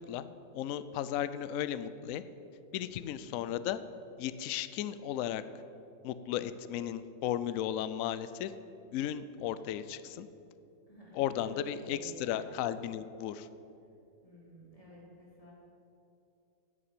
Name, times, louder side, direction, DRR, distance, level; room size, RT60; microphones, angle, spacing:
voice 1, 0.5-2.2 2.7-3.8 4.2-5.4 6.0-8.5 8.9-10.3 11.1-13.5, left 10 dB, 80° left, 13 dB, 0.7 m, -35 dB
voice 2, 2.9-3.3 6.4-6.8 10.9-12.8 14.2-15.5, equal, 20° left, -6 dB, 3.4 m, -52 dB
10.0 x 7.0 x 9.2 m, 2.7 s
omnidirectional pair, 2.0 m